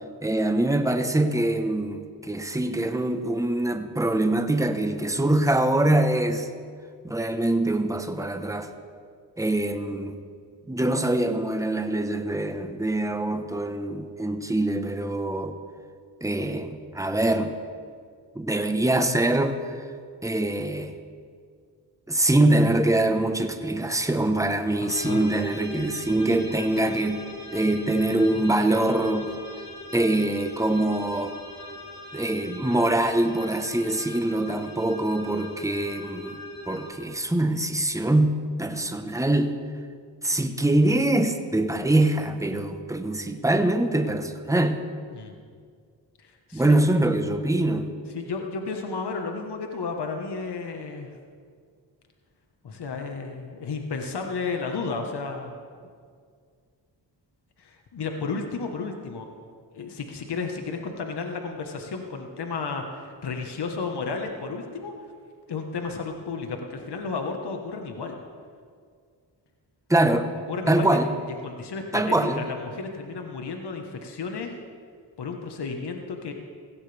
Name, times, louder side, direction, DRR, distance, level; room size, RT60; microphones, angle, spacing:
voice 1, 0.2-6.5 7.0-8.7 9.4-10.2 10.7-15.6 16.2-17.6 18.3-19.8 20.2-20.9 22.1-27.2 27.5-29.3 29.9-31.4 32.1-36.4 36.7-39.6 40.2-44.8 46.5-47.9 69.9-70.3 70.7-71.2 71.9-72.5, right 1 dB, 5° right, 7 dB, 1.1 m, -24 dB
voice 2, 24.8-25.2 45.1-45.3 46.2-46.8 48.1-51.1 52.6-55.6 57.6-59.3 59.7-64.9 65.5-68.2 70.5-71.0 71.4-74.6 75.2-76.3, left 4 dB, 65° left, 3 dB, 1.5 m, -33 dB
sound 1, 24.9-36.9, left 1 dB, 40° left, 3.2 m, -40 dB
16.5 x 16.0 x 3.5 m, 2.1 s
cardioid pair, 55°, 43 cm